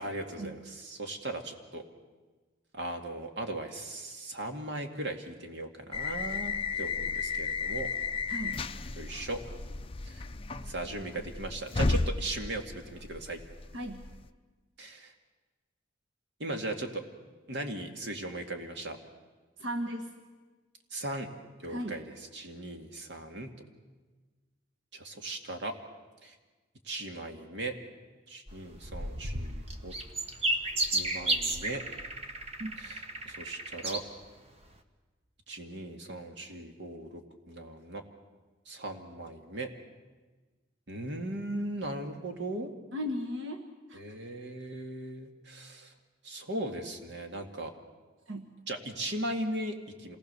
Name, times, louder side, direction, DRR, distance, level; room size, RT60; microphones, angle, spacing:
voice 1, 0.0-1.8 2.7-7.9 9.0-9.4 10.0-10.3 10.6-13.4 14.8-15.1 16.4-17.0 17.5-19.0 20.9-21.3 21.6-23.5 24.9-25.8 26.2-26.4 26.8-27.7 28.3-29.9 30.9-31.8 32.8-34.0 35.5-37.2 37.5-38.0 38.7-39.7 40.9-42.7 43.9-45.9 46.2-47.7 48.7-50.2, right 1 dB, 65° right, 5 dB, 2.2 m, -38 dB
sound 1, 5.9-14.3, left 4 dB, 30° left, 0.7 m, -34 dB
voice 2, 8.3-8.6 13.7-14.1 19.6-20.1 21.7-22.0 32.6-32.7 42.9-43.6 43.9-44.0 48.3-48.5, equal, 90° right, 3 dB, 1.5 m, -36 dB
sound 2, 28.5-34.0 34.6-34.7, right 1 dB, 35° right, 1.5 m, -33 dB
27.0 x 19.0 x 6.9 m, 1.3 s
head